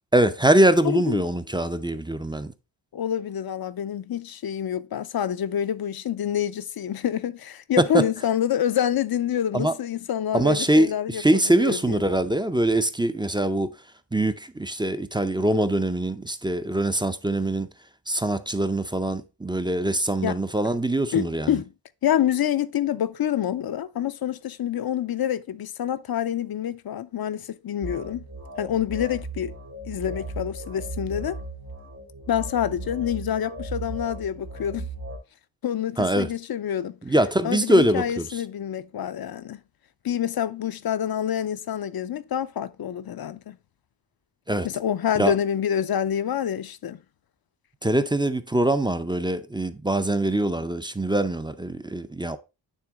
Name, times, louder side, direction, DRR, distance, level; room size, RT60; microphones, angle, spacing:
voice 1, 0.1-2.5 7.9-8.0 9.5-9.7 10.3-13.7 14.1-17.7 18.1-21.5 36.0-36.3 37.1-38.2 44.5-44.7 45.2-45.3 47.8-52.4, right 1 dB, 10° right, 0.5 m, -23 dB
voice 2, 0.8-1.2 2.9-12.0 20.2-20.4 21.1-21.7 22.0-28.2 28.6-29.5 29.9-31.4 32.3-34.9 35.6-37.0 37.4-39.6 40.0-43.6 44.6-47.0, left 10 dB, 50° left, 0.5 m, -27 dB
sound 1, 27.8-35.2, right 2 dB, 75° right, 2.0 m, -36 dB
9.1 x 3.4 x 3.5 m
cardioid pair, 60°, 46 cm